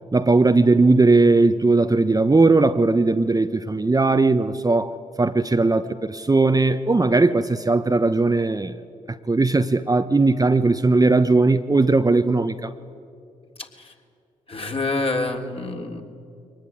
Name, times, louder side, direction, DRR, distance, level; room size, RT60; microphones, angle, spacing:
voice 1, 0.1-8.7 9.1-12.7, right 3 dB, 20° right, 1.0 m, -18 dB
voice 2, 14.5-16.0, left 2 dB, 35° left, 3.2 m, -26 dB
23.0 x 19.5 x 9.3 m
hypercardioid pair, 40°, 16 cm